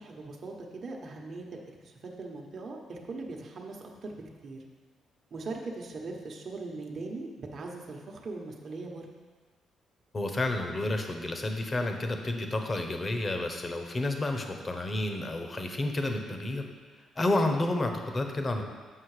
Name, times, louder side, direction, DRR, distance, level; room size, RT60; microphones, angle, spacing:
voice 1, 0.0-4.6 5.3-9.1, right 3 dB, 50° right, 0 dB, 1.1 m, -40 dB
voice 2, 10.1-16.7 17.2-18.6, left 2 dB, 30° left, 5 dB, 1.0 m, -30 dB
7.7 x 5.7 x 4.9 m, 1.5 s
cardioid pair, 90°, 0 cm